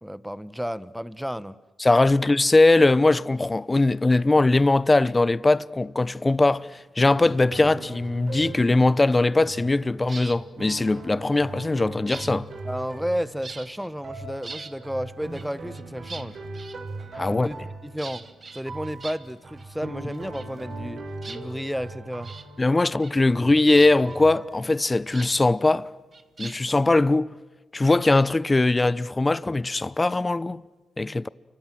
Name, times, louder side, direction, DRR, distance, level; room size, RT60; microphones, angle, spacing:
voice 1, 0.0-1.5 2.1-2.2 12.6-16.4 17.3-17.6 17.8-18.2 18.5-22.3, equal, ahead, 1.3 m, -32 dB
voice 2, 1.8-12.5 17.1-17.5 22.6-25.9 26.4-27.3 27.7-30.6 31.0-31.3, left 2 dB, 25° left, 0.9 m, -20 dB
sound 1, 7.0-25.5, right 2 dB, 60° right, 6.3 m, -40 dB
sound 2, 10.0-10.4 11.4-13.2 13.4-13.9 14.2-14.8 15.3-17.3 18.0-19.7 19.9-20.9 21.2-21.9 22.2-22.5 22.8-23.3 23.6-25.3 26.1-26.8, right 4 dB, 40° right, 1.9 m, -42 dB
30.0 x 25.5 x 7.7 m
cardioid pair, 70°, 0 cm